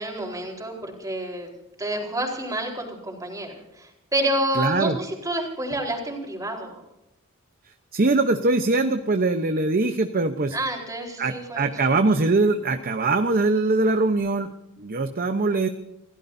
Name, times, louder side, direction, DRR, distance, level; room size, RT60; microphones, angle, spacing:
voice 1, 0.0-1.5 1.8-6.8 10.5-11.9, right 1 dB, 15° right, 1 dB, 4.2 m, -29 dB
voice 2, 4.6-5.0 7.9-10.6 11.2-15.7, right 3 dB, 45° right, 7 dB, 0.9 m, -22 dB
29.0 x 16.0 x 2.7 m, 0.89 s
head